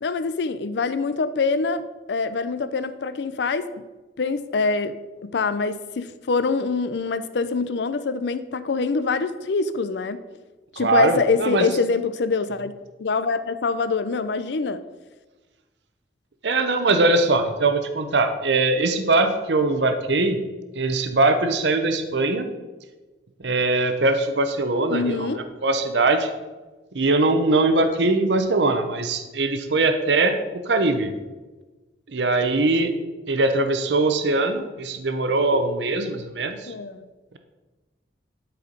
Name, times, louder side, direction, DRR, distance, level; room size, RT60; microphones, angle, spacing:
voice 1, 0.0-1.8 2.1-3.7 4.2-5.0 5.2-10.2 10.8-12.7 13.0-14.8 24.9-25.4 35.5-35.6 36.0-36.1 36.7-37.1, left 4 dB, 70° left, 12 dB, 0.5 m, -25 dB
voice 2, 10.8-11.7 16.4-20.4 20.8-22.5 23.4-26.3 26.9-30.4 30.7-31.1 32.1-32.9 33.3-36.7, right 2 dB, 75° right, 8 dB, 0.8 m, -21 dB
12.0 x 4.6 x 5.2 m, 1.2 s
head